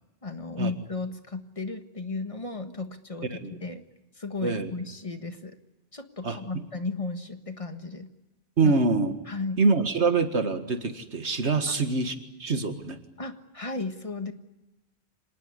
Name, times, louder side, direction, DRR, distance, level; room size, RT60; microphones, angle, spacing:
voice 1, 0.2-3.8 4.1-5.6 5.9-8.1 8.6-8.8 9.3-9.6 11.7-11.8 13.2-14.3, left 3 dB, 30° left, 7 dB, 1.6 m, -34 dB
voice 2, 6.2-6.6 8.6-9.1 9.6-13.0, right 4 dB, 90° right, 8 dB, 2.1 m, -25 dB
26.0 x 19.5 x 9.7 m, 1.0 s
omnidirectional pair, 1.1 m